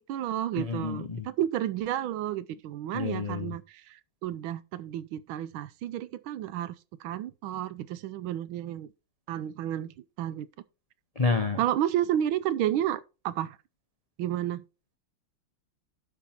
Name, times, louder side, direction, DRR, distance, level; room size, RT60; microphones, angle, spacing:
voice 1, 0.0-6.7 7.0-8.9 9.3-10.5 11.6-13.6 14.2-14.6, right 11 dB, 80° right, 1.4 m, -31 dB
voice 2, 0.6-1.3 2.9-3.5 11.2-11.6, left 4 dB, 70° left, 0.3 m, -29 dB
11.5 x 4.8 x 4.3 m
omnidirectional pair, 2.3 m